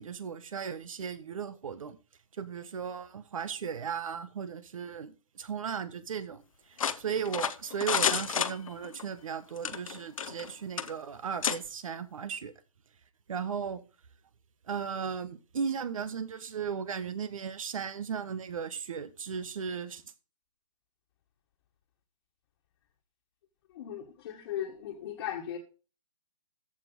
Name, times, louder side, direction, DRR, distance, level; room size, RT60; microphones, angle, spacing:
voice 1, 0.0-2.0 2.3-12.5 13.3-13.8 14.7-20.0, right 7 dB, 70° right, 1.3 m, -36 dB
sound 1, 6.8-9.0 9.6-10.5 10.8-10.9 11.4-11.6, left 8 dB, 75° left, 1.0 m, -30 dB
voice 2, 23.7-25.6, left 10 dB, 45° left, 1.7 m, -37 dB
14.5 x 5.1 x 3.9 m
hypercardioid pair, 145°, 18 cm